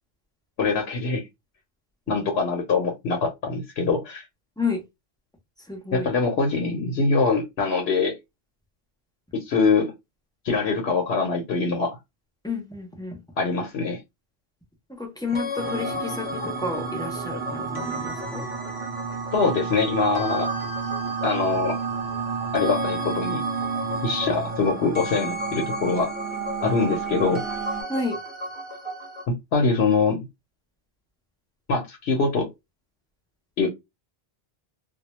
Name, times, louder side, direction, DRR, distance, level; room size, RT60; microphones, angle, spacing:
voice 1, 0.6-1.3 2.1-4.3 5.9-8.1 9.5-9.9 10.4-12.0 13.4-14.0 19.3-20.5 21.2-21.8 22.5-23.4 24.0-26.1 26.6-27.4 29.5-30.2 31.7-32.5 33.6-33.7, left 4 dB, 75° left, 0.9 m, -23 dB
voice 2, 5.7-6.1 12.4-13.2 15.0-18.5 27.9-28.2, left 3 dB, 5° left, 0.5 m, -30 dB
sound 1, 15.3-29.2, left 3 dB, 30° left, 0.8 m, -35 dB
sound 2, 15.6-27.8, right 6 dB, 70° right, 0.8 m, -31 dB
2.2 x 2.1 x 2.9 m
omnidirectional pair, 1.1 m